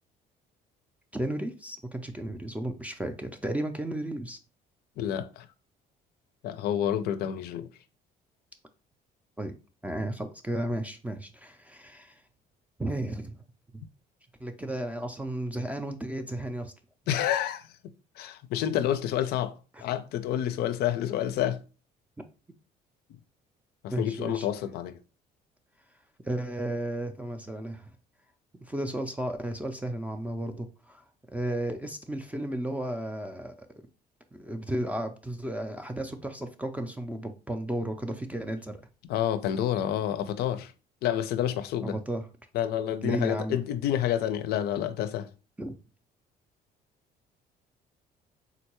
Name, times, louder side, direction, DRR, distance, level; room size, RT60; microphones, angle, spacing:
voice 1, 1.1-4.4 9.4-9.5 9.8-12.2 12.8-13.4 13.7-13.8 14.4-16.7 23.9-24.5 26.2-27.9 28.6-31.0 31.3-33.9 34.3-38.8 41.8-42.2 43.0-43.6 45.6-45.7, right 1 dB, 10° right, 0.3 m, -33 dB
voice 2, 5.0-5.5 6.4-7.7 17.1-17.7 18.2-21.6 23.8-25.0 39.1-40.7 41.0-42.0 42.5-45.3, left 10 dB, 70° left, 0.4 m, -29 dB
3.8 x 2.2 x 2.9 m
cardioid pair, 110°, 17 cm